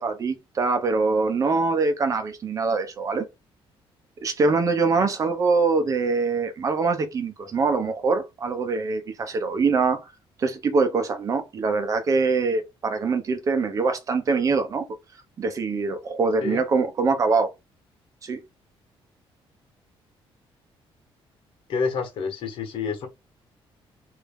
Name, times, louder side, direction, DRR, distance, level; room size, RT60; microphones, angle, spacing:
voice 1, 0.0-3.3 4.2-10.1 10.4-14.9 15.4-17.5 18.2-18.4, right 4 dB, 35° right, 0.8 m, -23 dB
voice 2, 21.7-23.1, left 5 dB, 60° left, 1.3 m, -28 dB
3.3 x 2.8 x 3.5 m
cardioid pair, 165°, 10 cm